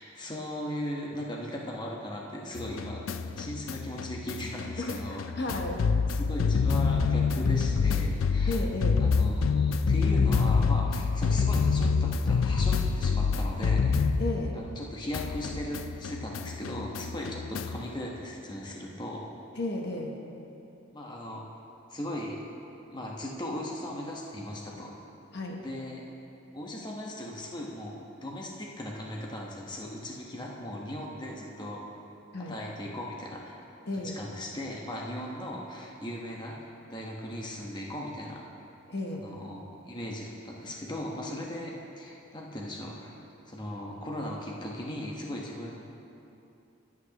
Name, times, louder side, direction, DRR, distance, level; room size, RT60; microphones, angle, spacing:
voice 1, 0.2-3.0 3.3-5.2 6.3-8.6 9.0-14.0 14.5-19.3 20.9-21.4 21.9-22.4 22.9-24.9 25.6-26.0 26.5-31.8 32.5-33.6 34.0-38.4 39.1-43.2 43.5-45.7, left 1 dB, 20° left, -2 dB, 1.2 m, -38 dB
Harambe The Bush Kangaroostart, 2.6-14.8 15.1-17.9, left 5 dB, 85° left, 0.4 m, -27 dB
voice 2, 4.8-5.8 8.5-9.1 14.2-14.6 19.5-20.2 25.3-25.6 32.3-32.6 33.9-34.2 38.9-39.3, left 2 dB, 55° left, 0 dB, 1.0 m, -33 dB
22.0 x 8.5 x 3.0 m, 2.9 s
head